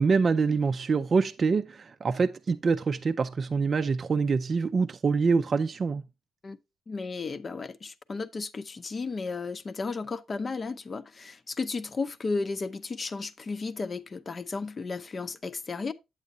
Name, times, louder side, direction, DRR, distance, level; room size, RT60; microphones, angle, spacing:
voice 1, 0.0-6.0, right 4 dB, 40° right, 0.4 m, -25 dB
voice 2, 6.9-15.9, left 4 dB, 35° left, 0.6 m, -34 dB
8.3 x 8.0 x 2.7 m
cardioid pair, 90°, 0 cm